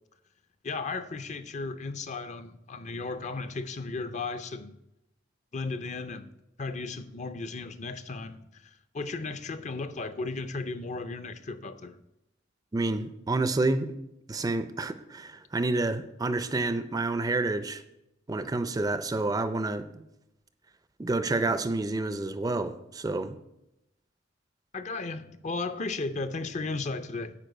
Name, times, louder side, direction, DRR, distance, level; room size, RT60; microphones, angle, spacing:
voice 1, 0.6-4.7 5.5-6.3 6.6-12.0 24.7-27.3, left 3 dB, 40° left, 0.5 m, -35 dB
voice 2, 12.7-13.9 14.3-17.8 18.3-20.0 21.0-23.4, right 2 dB, 20° right, 0.4 m, -29 dB
9.9 x 4.7 x 7.7 m
head